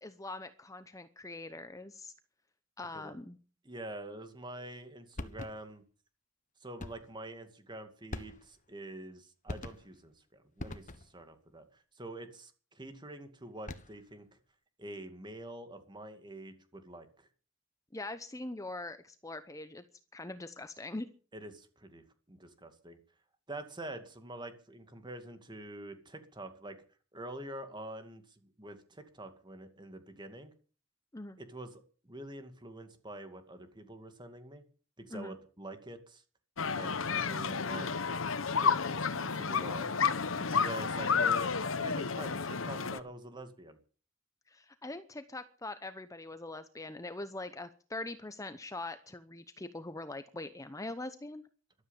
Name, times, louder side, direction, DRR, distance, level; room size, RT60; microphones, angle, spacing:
voice 1, 0.0-2.1 2.8-3.4 17.9-19.8 20.1-21.1 31.1-31.4 35.1-35.4 40.4-40.6 44.5-51.4, left 2 dB, 15° left, 11 dB, 0.8 m, -42 dB
voice 2, 3.6-5.8 6.6-14.4 14.8-17.3 21.3-23.0 23.5-26.8 27.1-30.5 31.4-34.6 35.0-36.2 36.7-38.0 38.6-39.9 40.5-43.8, right 1 dB, 25° right, 8 dB, 2.3 m, -46 dB
sound 1, 5.2-5.8 6.8-7.2 8.1-8.7 9.5-10.1 10.6-11.3 13.5-14.1, left 2 dB, 40° left, 1.3 m, -43 dB
sound 2, 36.6-43.0, left 5 dB, 80° left, 1.0 m, -31 dB
14.0 x 13.0 x 7.3 m, 0.40 s
head